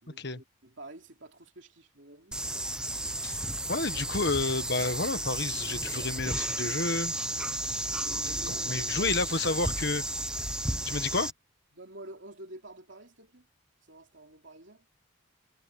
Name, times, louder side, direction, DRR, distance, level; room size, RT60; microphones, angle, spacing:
voice 1, 0.0-2.6 7.7-9.1 11.7-13.5 13.9-14.8, right 1 dB, 60° right, 3.2 m, -49 dB
sound 1, 2.3-11.3, right 1 dB, 5° right, 1.0 m, -33 dB
voice 2, 3.7-7.1 8.5-10.0 10.8-11.3, left 3 dB, 50° left, 1.5 m, -30 dB
head